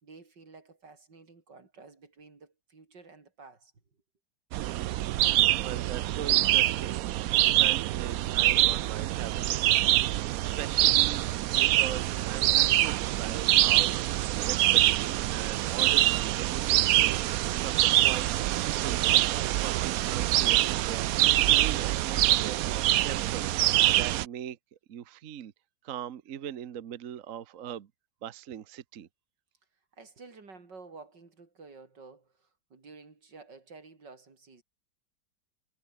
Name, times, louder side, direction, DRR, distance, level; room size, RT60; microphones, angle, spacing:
voice 1, 0.0-3.7 29.9-34.6, right 4 dB, 85° right, 4.4 m, -51 dB
sound 1, 4.5-24.2, right 15 dB, 70° right, 0.9 m, -25 dB
voice 2, 5.6-7.0 7.4-24.6 24.9-25.5 25.8-27.9 28.2-29.1, right 9 dB, 55° right, 1.2 m, -41 dB
omnidirectional pair, 1.8 m